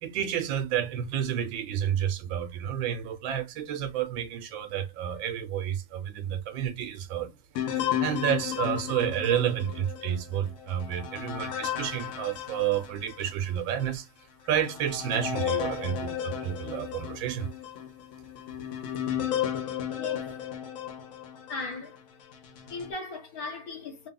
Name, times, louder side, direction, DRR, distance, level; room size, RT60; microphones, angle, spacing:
voice 1, 0.0-7.3 7.7-14.1 14.4-17.5, right 9 dB, 80° right, 1.4 m, -30 dB
sound 1, 7.6-13.3 13.8-13.9 14.5-21.7 22.3-22.9, left 9 dB, 90° left, 1.5 m, -34 dB
voice 2, 20.0-20.3 21.5-22.0 22.7-24.1, left 3 dB, 55° left, 1.2 m, -37 dB
3.5 x 2.2 x 3.6 m
omnidirectional pair, 2.1 m